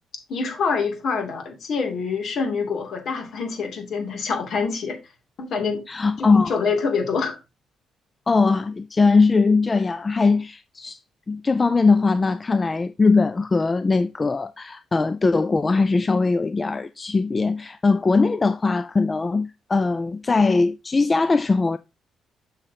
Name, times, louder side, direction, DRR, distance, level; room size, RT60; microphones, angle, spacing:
voice 1, 0.3-5.0 5.4-5.8 6.2-7.4, left 5 dB, 60° left, 2.7 m, -26 dB
voice 2, 5.9-6.5 8.3-11.0 11.3-21.8, left 4 dB, 25° left, 0.4 m, -20 dB
7.2 x 6.6 x 2.9 m
cardioid pair, 90°, 0 cm